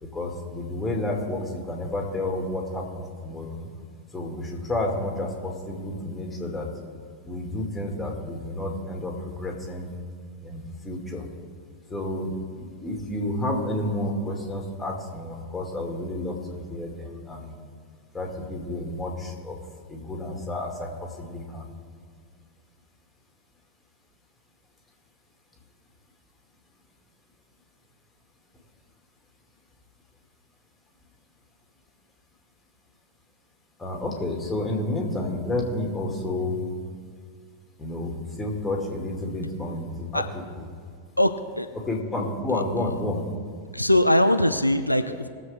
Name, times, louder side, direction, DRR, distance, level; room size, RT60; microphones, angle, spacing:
voice 1, 0.0-3.7 4.1-6.7 7.2-9.9 10.4-11.3 11.9-17.5 18.1-19.6 19.9-21.7 33.8-36.6 37.8-40.2 40.6-40.7 41.8-43.3 45.1-45.2, left 1 dB, 10° left, 0 dB, 2.4 m, -30 dB
voice 2, 41.2-41.7 42.5-42.6 43.7-45.3, left 1 dB, 90° left, 8 dB, 0.5 m, -21 dB
20.5 x 7.5 x 3.6 m, 2.1 s
figure-of-eight pair, 90°, 0 cm